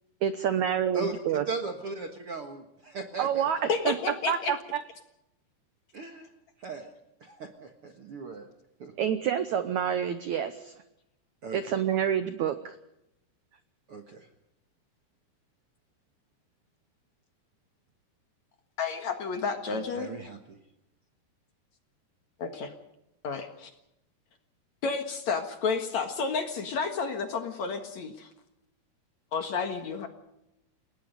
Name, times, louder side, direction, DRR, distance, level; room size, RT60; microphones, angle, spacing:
voice 1, 0.2-1.4 3.2-4.0 4.3-4.8 9.0-10.7 11.5-12.8, right 9 dB, 80° right, 11 dB, 1.7 m, -28 dB
voice 2, 0.9-3.7 5.9-6.3 6.6-6.9 7.2-8.5 8.8-8.9 11.4-11.6 13.9-14.3 19.7-20.6, right 3 dB, 55° right, 5 dB, 1.7 m, -38 dB
voice 3, 3.7-4.5 18.8-20.1 22.4-22.7 23.2-23.7 24.8-28.3 29.3-30.1, left 5 dB, 55° left, 6 dB, 2.4 m, -31 dB
29.5 x 18.5 x 5.2 m, 0.85 s
omnidirectional pair, 4.7 m